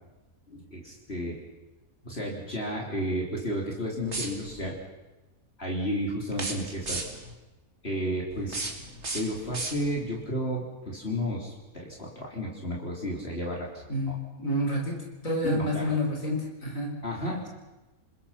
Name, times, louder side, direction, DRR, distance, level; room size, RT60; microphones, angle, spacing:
voice 1, 0.5-1.4 2.0-4.8 5.6-7.1 7.8-8.7 9.1-14.2 15.4-15.9 17.0-17.5, equal, 45° left, -2 dB, 3.8 m, -32 dB
sound 1, 4.0-4.7 6.3-7.3 8.3-10.2, right 2 dB, 50° right, 2.8 m, -36 dB
voice 2, 13.9-17.0, left 1 dB, 65° left, 1 dB, 4.6 m, -29 dB
28.0 x 20.5 x 5.8 m, 1.1 s
omnidirectional pair, 1.5 m